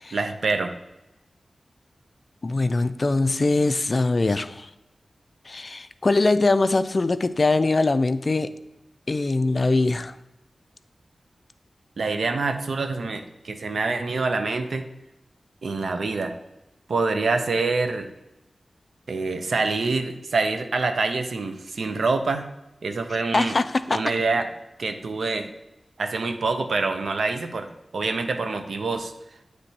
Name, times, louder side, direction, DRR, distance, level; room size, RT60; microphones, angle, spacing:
voice 1, 0.1-0.7 12.0-14.9 15.6-16.3 16.9-18.1 19.1-22.5 22.8-23.6 23.9-24.5 24.8-25.5 26.0-29.1, right 3 dB, 80° right, 7 dB, 0.5 m, -26 dB
voice 2, 2.4-4.7 5.5-8.5 9.1-10.2 23.3-24.0, left 3 dB, 50° left, 12 dB, 0.3 m, -22 dB
8.3 x 3.3 x 4.0 m, 0.95 s
cardioid pair, 55°, 0 cm